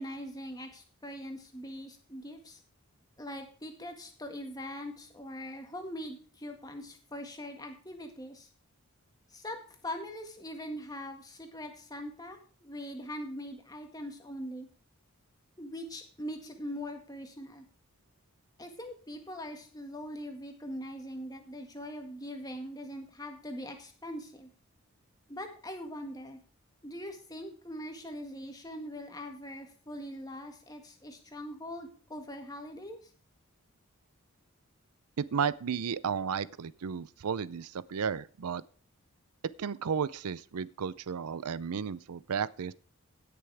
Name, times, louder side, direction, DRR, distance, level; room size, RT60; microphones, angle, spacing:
voice 1, 0.0-2.6 3.2-8.5 9.3-14.7 15.6-17.6 18.6-24.5 25.3-26.4 26.8-33.0, equal, 15° left, 1.7 m, -42 dB
voice 2, 35.2-38.6 39.6-42.7, right 6 dB, 85° right, 0.5 m, -33 dB
17.0 x 6.9 x 3.4 m
head